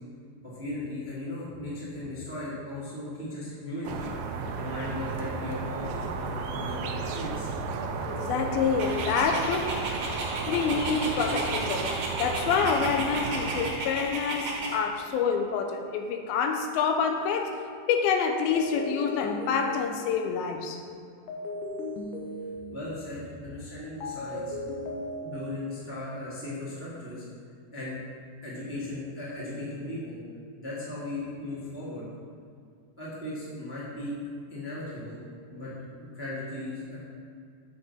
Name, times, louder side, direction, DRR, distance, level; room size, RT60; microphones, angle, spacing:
voice 1, 0.4-4.1 4.6-7.5 22.7-24.5 24.8-24.9 25.2-27.2 27.7-28.0 28.4-30.2 30.6-32.0 33.0-34.1 34.5-35.2 35.5-35.7 36.1-37.0, left 1 dB, 5° right, -8 dB, 0.9 m, -37 dB
sound 1, 3.8-13.7, right 4 dB, 85° right, 2.4 m, -34 dB
voice 2, 8.1-9.8 10.5-17.6 17.9-20.8, left 6 dB, 90° left, 4 dB, 2.5 m, -27 dB
Dog, 8.8-14.8, right 2 dB, 55° right, 1.9 m, -34 dB
sound 2, 17.2-17.5 18.5-20.3 21.3-23.0 24.0-25.7, left 1 dB, 70° left, 2.2 m, -37 dB
7.7 x 6.7 x 4.2 m, 2.3 s
omnidirectional pair, 4.3 m